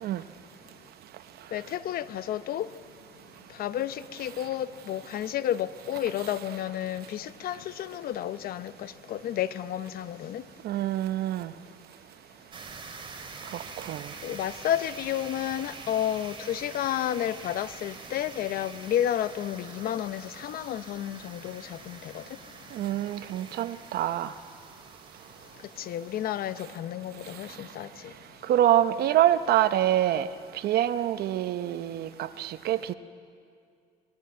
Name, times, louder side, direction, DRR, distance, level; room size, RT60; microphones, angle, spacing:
voice 1, 1.5-2.7 3.6-10.4 14.2-22.2 25.8-28.1, left 11 dB, 60° left, 0.7 m, -31 dB
voice 2, 10.6-11.5 13.5-14.1 22.7-24.3 28.5-30.3 30.6-32.9, right 12 dB, 70° right, 0.8 m, -26 dB
sound 1, 12.5-26.6, right 4 dB, 30° right, 2.4 m, -46 dB
21.5 x 14.0 x 9.6 m
cardioid pair, 110°, 17 cm